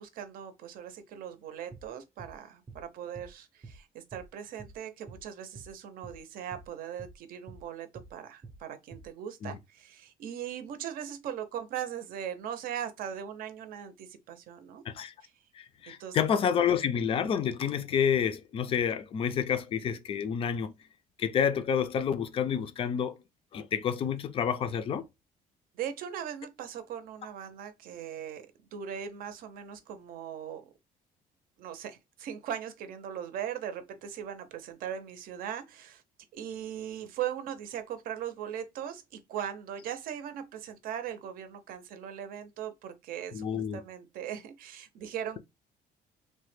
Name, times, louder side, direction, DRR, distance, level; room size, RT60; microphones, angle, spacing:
voice 1, 0.0-14.8 15.2-15.3 15.9-16.2 25.7-28.4 28.7-30.6 31.6-36.0 36.3-43.4 43.7-45.4, right 9 dB, 65° right, 0.6 m, -39 dB
sound 1, 1.7-1.9 2.2-2.4 2.7-2.8 3.2-3.3 3.6-3.8 4.1-4.3 4.6-4.8 5.1-5.2 5.5-5.7 6.0-6.2 6.5-6.7 7.0-7.2 7.5-7.6 8.0-8.1 8.4-8.6 8.9-9.1, right 3 dB, 20° right, 0.5 m, -48 dB
voice 2, 15.5-20.8 21.2-23.1 23.5-25.0 43.3-43.8, left 8 dB, 35° left, 0.4 m, -29 dB
3.2 x 2.1 x 3.1 m
cardioid pair, 160°, 16 cm